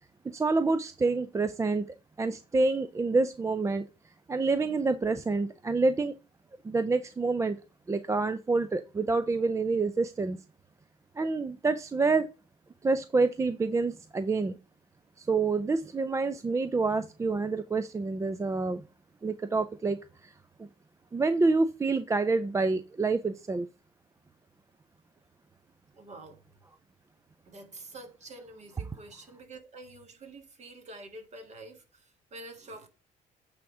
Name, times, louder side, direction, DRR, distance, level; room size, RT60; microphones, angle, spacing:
voice 1, 0.3-1.9 2.2-3.8 4.3-6.2 6.6-7.6 7.9-10.4 11.2-12.3 12.8-14.6 15.2-18.8 19.2-20.3 21.1-23.7, right 3 dB, 15° right, 0.4 m, -27 dB
voice 2, 26.0-26.4 27.5-32.9, right 2 dB, 40° right, 1.9 m, -47 dB
8.6 x 3.6 x 4.9 m
cardioid pair, 110°, 17 cm